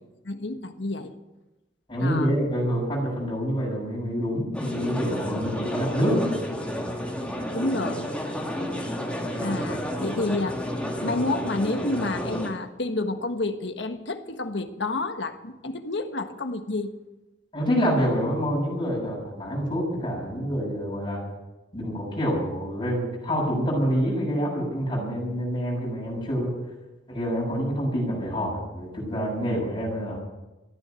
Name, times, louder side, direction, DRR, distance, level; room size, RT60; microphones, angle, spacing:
voice 1, 0.2-1.1 2.0-2.3 7.5-8.2 9.4-10.6 11.0-16.9, left 2 dB, 75° left, 1.4 m, -29 dB
voice 2, 1.9-6.4 17.5-21.2 21.7-26.5 27.1-30.2, equal, 30° left, 7.0 m, -27 dB
sound 1, 4.5-12.5, equal, 5° left, 2.6 m, -31 dB
15.0 x 10.0 x 9.2 m
head